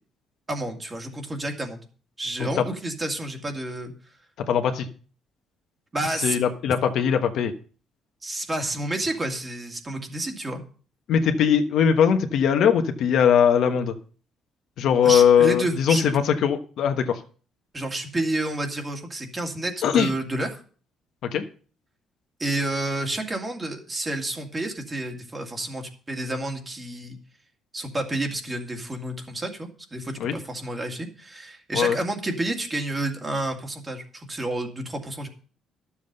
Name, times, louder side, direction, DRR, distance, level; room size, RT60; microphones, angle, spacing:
voice 1, 0.5-1.9 2.2-3.9 5.9-6.4 8.2-10.6 15.0-16.1 17.7-20.5 22.4-27.2 27.7-35.3, right 1 dB, 20° right, 3 dB, 2.1 m, -30 dB
voice 2, 4.4-4.9 6.2-7.5 11.1-13.9 14.8-17.2 19.8-20.1 21.2-21.4 30.2-30.3 31.7-32.0, left 8 dB, 65° left, 6 dB, 1.2 m, -20 dB
12.0 x 7.3 x 5.4 m, 0.41 s
cardioid pair, 125°, 0 cm